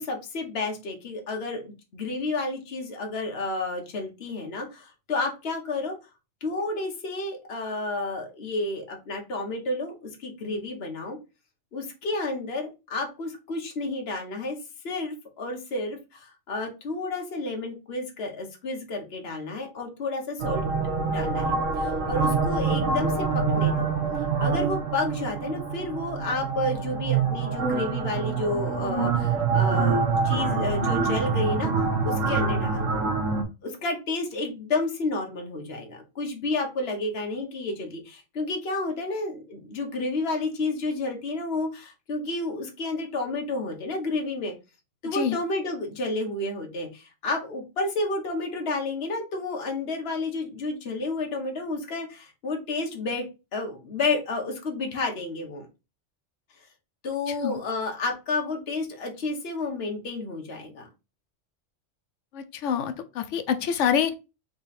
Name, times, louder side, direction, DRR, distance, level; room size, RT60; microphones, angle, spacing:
voice 1, 0.0-5.9 6.4-11.2 11.7-14.6 14.8-20.7 21.1-23.3 23.5-23.9 24.4-33.0 33.6-44.5 45.0-53.3 53.5-55.7 57.0-60.9, left 2 dB, 55° left, 2 dB, 1.3 m, -31 dB
sound 1, 20.4-33.4, right 4 dB, 90° right, 1.3 m, -25 dB
voice 2, 45.0-45.4 57.4-57.6 62.3-64.1, left 8 dB, 75° left, 10 dB, 1.0 m, -26 dB
3.8 x 3.0 x 4.1 m, 0.27 s
omnidirectional pair, 1.3 m